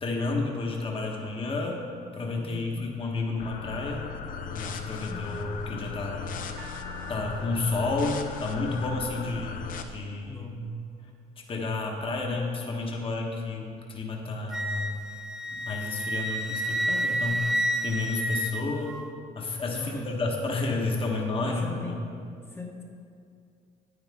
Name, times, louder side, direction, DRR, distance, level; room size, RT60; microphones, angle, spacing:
voice 1, 0.0-1.8 2.1-4.0 4.5-6.7 7.1-9.6 9.9-10.4 11.5-15.0 15.5-19.0 19.4-22.0, left 3 dB, 30° left, 0 dB, 1.3 m, -31 dB
voice 2, 2.4-2.9 5.0-5.5 10.2-10.8 19.7-20.2 21.4-22.0 22.5-22.8, equal, 15° left, 0 dB, 1.1 m, -40 dB
sound 1, 3.4-9.8, left 6 dB, 55° left, 0.7 m, -37 dB
sound 2, 6.6-9.8 10.5-10.6, right 4 dB, 45° right, 1.5 m, -50 dB
Wind instrument woodwind instrument, 14.5-19.1, right 1 dB, 5° right, 0.5 m, -30 dB
9.8 x 8.9 x 3.6 m, 2.4 s
cardioid pair, 110°, 17 cm